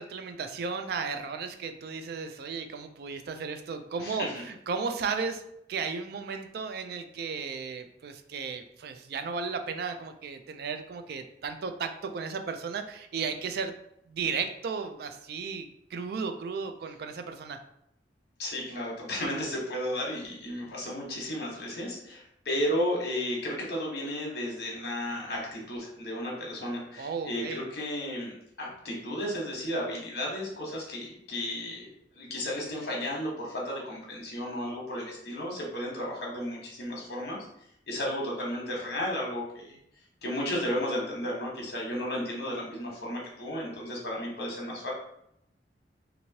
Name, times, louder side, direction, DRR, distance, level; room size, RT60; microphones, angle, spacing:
voice 1, 0.0-5.4 5.7-13.8 14.1-17.6 27.0-27.6, right 5 dB, 60° right, 7 dB, 0.3 m, -34 dB
voice 2, 4.0-4.3 18.4-31.9 32.1-37.4 37.9-39.8 40.2-44.9, left 1 dB, 60° left, -3 dB, 1.1 m, -33 dB
3.0 x 2.6 x 2.7 m, 0.76 s
head